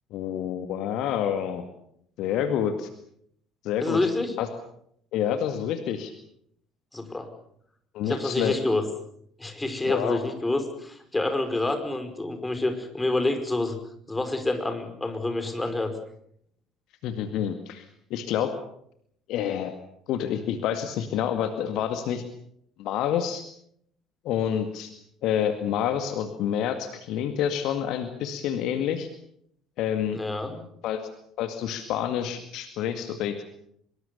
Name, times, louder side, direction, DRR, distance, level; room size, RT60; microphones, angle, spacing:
voice 1, 0.1-1.6 2.2-2.9 3.6-4.0 4.4-4.5 5.1-6.1 7.9-8.6 9.8-10.2 17.0-17.9 18.1-18.5 19.3-19.7 20.1-22.2 22.8-23.4 24.2-24.9 25.2-29.1 29.8-30.2 30.8-31.0 31.4-33.4, left 9 dB, 55° left, 8 dB, 2.1 m, -28 dB
voice 2, 3.8-4.3 6.9-7.3 8.0-8.8 9.4-13.8 14.1-15.9 30.1-30.6, left 2 dB, 10° left, 7 dB, 5.3 m, -27 dB
25.0 x 22.5 x 7.0 m, 0.70 s
figure-of-eight pair, 55°, 0 cm